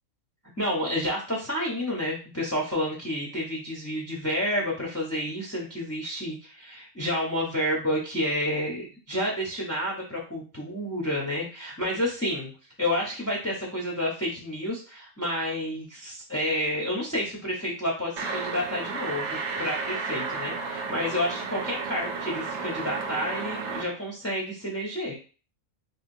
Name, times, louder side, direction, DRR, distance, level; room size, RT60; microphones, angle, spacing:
voice 1, 0.6-12.5 12.8-25.1, equal, 15° left, -3 dB, 0.5 m, -30 dB
sound 1, 18.2-23.8, right 4 dB, 65° right, 0.8 m, -32 dB
3.5 x 2.4 x 2.6 m, 0.34 s
omnidirectional pair, 1.4 m